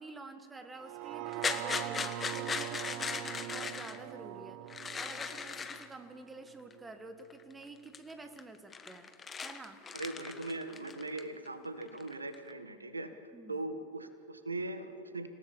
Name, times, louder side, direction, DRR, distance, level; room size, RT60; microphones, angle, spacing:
voice 1, 0.0-9.1 9.4-9.8 13.3-13.6, right 2 dB, 10° right, 9 dB, 1.8 m, -49 dB
sound 1, 0.8-6.9 7.3-7.4, right 14 dB, 45° right, 0.6 m, -42 dB
sound 2, 1.3-4.0 4.7-5.9 6.7-6.8 7.3-7.6 7.9-8.1 8.4-11.5 11.8-12.5, left 5 dB, 20° left, 1.4 m, -38 dB
voice 2, 9.9-13.1 13.5-15.3, right 2 dB, 80° right, 10 dB, 1.5 m, -40 dB
27.5 x 17.0 x 7.2 m, 2.4 s
figure-of-eight pair, 90°, 0 cm